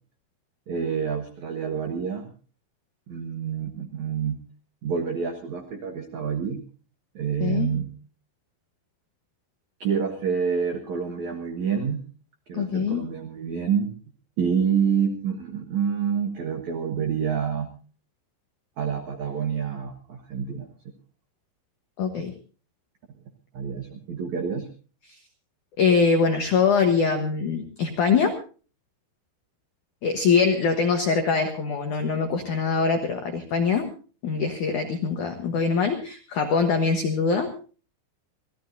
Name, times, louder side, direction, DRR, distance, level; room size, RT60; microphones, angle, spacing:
voice 1, 0.7-2.3 3.1-4.4 4.8-6.6 7.1-7.9 9.8-12.0 12.5-13.9 14.4-17.7 18.8-20.7 23.5-24.7, right 7 dB, 80° right, 5 dB, 1.6 m, -27 dB
voice 2, 12.5-13.0 22.0-22.3 25.8-28.4 30.0-33.9 34.2-37.5, left 5 dB, 80° left, 5 dB, 1.7 m, -23 dB
26.0 x 16.5 x 2.7 m, 0.38 s
omnidirectional pair, 5.6 m